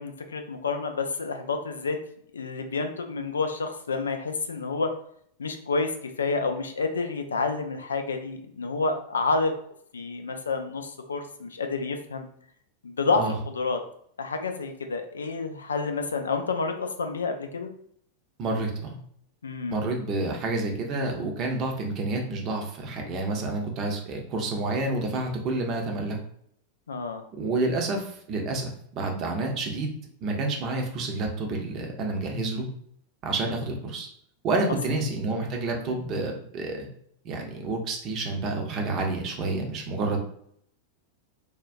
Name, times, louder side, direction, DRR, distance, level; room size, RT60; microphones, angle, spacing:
voice 1, 0.0-2.0 2.3-4.9 5.4-5.9 6.2-9.5 9.9-12.2 12.8-13.8 14.2-17.7 19.4-19.8 26.9-27.2 34.9-35.0, left 4 dB, 70° left, 6 dB, 0.3 m, -29 dB
voice 2, 18.4-18.9 19.7-26.2 27.4-29.9 30.2-32.7 33.2-34.1 34.4-36.9 37.2-40.2, right 2 dB, 35° right, 2 dB, 0.7 m, -29 dB
3.5 x 2.3 x 2.5 m, 0.66 s
figure-of-eight pair, 90°, 0 cm